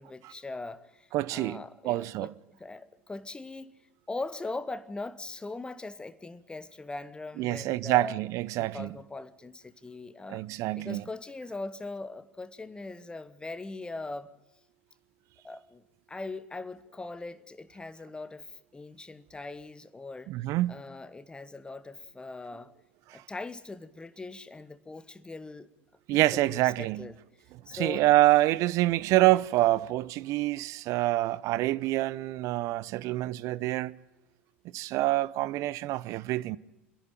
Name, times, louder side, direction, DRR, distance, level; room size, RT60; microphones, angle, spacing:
voice 1, 0.0-3.7 4.1-8.2 8.5-10.4 10.7-14.3 15.4-20.3 20.7-22.7 23.1-25.7 26.1-27.2 27.6-28.1 33.0-33.1, left 3 dB, 15° left, 1.2 m, -41 dB
voice 2, 1.1-2.3 7.4-8.9 10.3-11.0 20.3-20.8 26.1-27.1 27.7-34.0 34.7-36.6, right 16 dB, 50° right, 0.7 m, -26 dB
26.0 x 11.0 x 9.1 m
hypercardioid pair, 80°, 7 cm